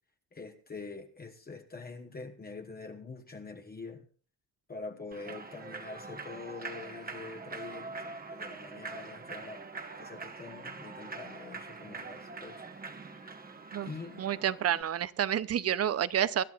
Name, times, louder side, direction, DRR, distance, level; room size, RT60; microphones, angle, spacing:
voice 1, 0.3-4.1 4.7-9.7 10.0-12.7 13.8-14.2, left 3 dB, 25° left, 1.2 m, -45 dB
Human voice / Clapping / Cheering, 5.1-14.8, right 4 dB, 25° right, 1.3 m, -44 dB
voice 2, 14.2-16.4, right 10 dB, 45° right, 0.7 m, -29 dB
25.5 x 11.5 x 2.4 m
cardioid pair, 115°, 35 cm